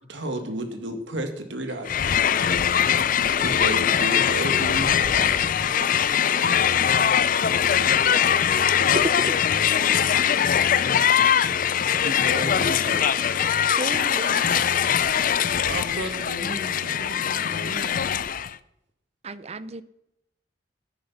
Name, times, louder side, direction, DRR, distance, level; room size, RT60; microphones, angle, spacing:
voice 1, 0.1-2.3 3.4-6.8 11.8-13.1 15.6-18.2, right 1 dB, 85° right, 2.2 m, -33 dB
Crowd, 1.8-18.5, left 8 dB, 50° left, 0.5 m, -22 dB
voice 2, 7.4-9.0 9.6-10.1, left 1 dB, 85° left, 3.3 m, -42 dB
voice 3, 13.8-15.0 19.2-19.8, right 2 dB, 35° right, 0.7 m, -36 dB
15.5 x 10.5 x 5.7 m
head